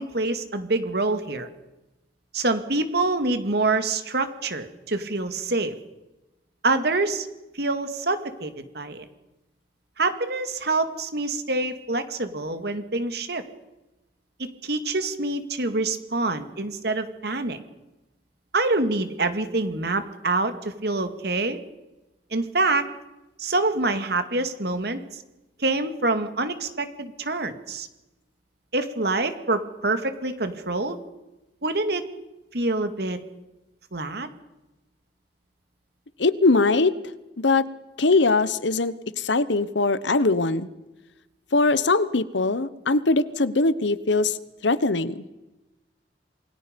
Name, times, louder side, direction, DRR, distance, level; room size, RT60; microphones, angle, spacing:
voice 1, 0.0-1.5 2.3-5.7 6.6-7.3 7.5-9.1 10.0-13.4 14.4-17.6 18.5-21.6 22.3-22.8 23.4-25.0 25.6-27.9 28.7-31.0 31.6-32.0 32.5-33.2 33.9-34.3, right 2 dB, 60° right, 9 dB, 2.2 m, -26 dB
voice 2, 36.2-36.9 37.4-37.7 38.0-40.7 41.5-44.4 44.6-45.3, left 3 dB, 80° left, 15 dB, 1.1 m, -21 dB
28.0 x 21.5 x 5.3 m, 1.0 s
head